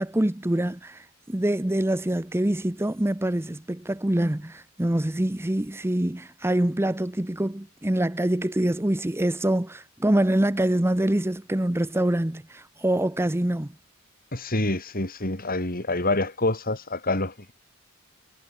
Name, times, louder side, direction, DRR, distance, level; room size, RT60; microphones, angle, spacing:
voice 1, 0.0-13.7, right 1 dB, 10° right, 0.7 m, -25 dB
voice 2, 14.3-17.5, left 2 dB, 45° left, 4.6 m, -27 dB
head